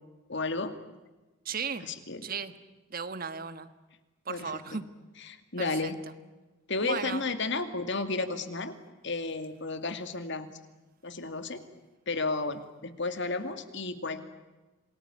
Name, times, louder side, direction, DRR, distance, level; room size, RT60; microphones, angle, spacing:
voice 1, 0.3-0.7 1.8-2.2 4.3-4.8 5.2-6.0 6.7-8.8 9.0-10.5 11.0-11.6 12.1-14.2, left 3 dB, 60° left, 10 dB, 2.3 m, -33 dB
voice 2, 1.4-1.9 2.2-2.5 2.9-3.7 4.2-4.8 5.6-5.9 6.8-7.2, right 5 dB, 45° right, 12 dB, 1.4 m, -35 dB
28.0 x 20.0 x 9.7 m, 1.2 s
head